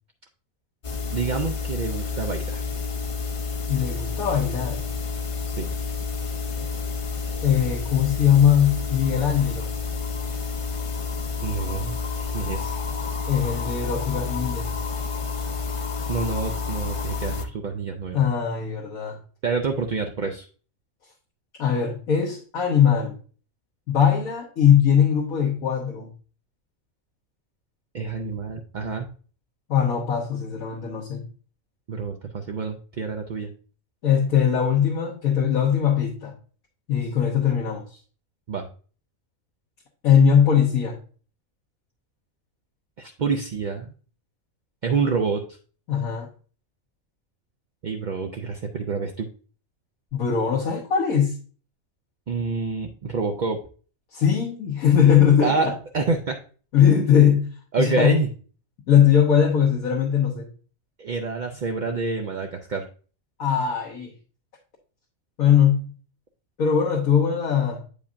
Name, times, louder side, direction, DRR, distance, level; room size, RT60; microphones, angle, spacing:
sound 1, 0.8-17.4, left 4 dB, 45° left, 0.4 m, -29 dB
voice 1, 1.1-2.7 5.6-5.7 11.4-12.0 12.3-12.8 16.1-18.2 19.4-20.5 27.9-29.1 31.9-33.5 38.5-38.7 43.0-43.9 44.8-45.4 47.8-49.3 52.3-53.6 55.4-56.4 57.7-58.3 61.0-62.9, right 4 dB, 60° right, 0.5 m, -27 dB
voice 2, 3.7-4.8 7.4-9.7 13.3-14.7 18.1-19.2 21.6-23.1 23.9-26.1 29.7-31.2 34.0-36.3 36.9-37.8 40.0-41.0 45.9-46.3 50.1-51.3 54.1-55.7 56.7-57.5 57.8-58.2 58.9-60.5 63.4-64.1 65.4-65.9 66.6-67.9, left 8 dB, 85° left, 1.6 m, -20 dB
8.3 x 5.0 x 2.5 m
omnidirectional pair, 1.4 m